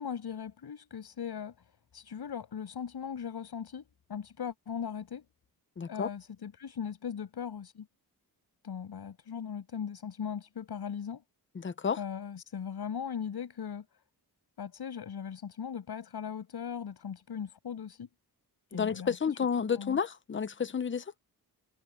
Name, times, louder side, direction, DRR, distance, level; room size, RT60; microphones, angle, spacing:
voice 1, 0.0-1.5 1.9-5.2 5.9-7.9 8.6-11.2 12.0-13.9 14.6-18.1 18.7-19.4 19.8-20.0, left 7 dB, 80° left, 6.2 m, -39 dB
voice 2, 5.8-6.1 11.5-12.0 18.7-21.1, left 6 dB, 30° left, 0.7 m, -31 dB
wide cardioid pair, 150°, 38 cm